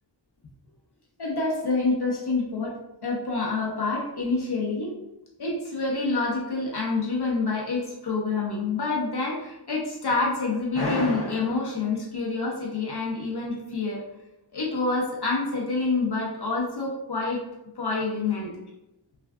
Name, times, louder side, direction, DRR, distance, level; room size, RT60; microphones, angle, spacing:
voice 1, 1.2-2.7 3.0-4.9 5.4-14.0 14.5-17.4 17.8-18.5, left 3 dB, 60° left, -3 dB, 0.8 m, -27 dB
3.3 x 2.4 x 2.3 m, 0.90 s
wide cardioid pair, 60°, 45 cm